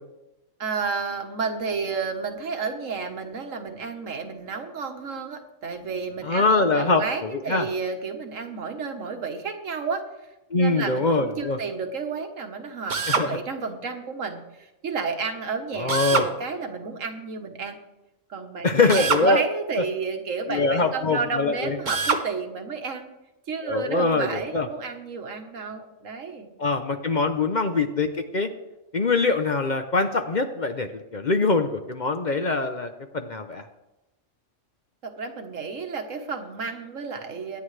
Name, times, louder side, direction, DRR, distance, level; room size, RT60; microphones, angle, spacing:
voice 1, 0.6-10.0 10.5-17.8 18.3-23.1 23.5-26.5 35.0-37.6, right 5 dB, 75° right, 5 dB, 1.7 m, -31 dB
voice 2, 6.2-7.7 10.5-11.6 13.1-13.4 15.8-16.3 18.6-19.4 19.8-19.9 20.5-21.8 23.6-24.7 26.6-28.5 28.9-33.6, left 3 dB, 40° left, 7 dB, 0.8 m, -23 dB
Drill, 12.9-13.3 15.9-16.3 18.9-19.3 21.9-22.3, right 4 dB, 40° right, 1.0 m, -24 dB
23.5 x 9.4 x 3.3 m, 0.98 s
omnidirectional pair, 1.3 m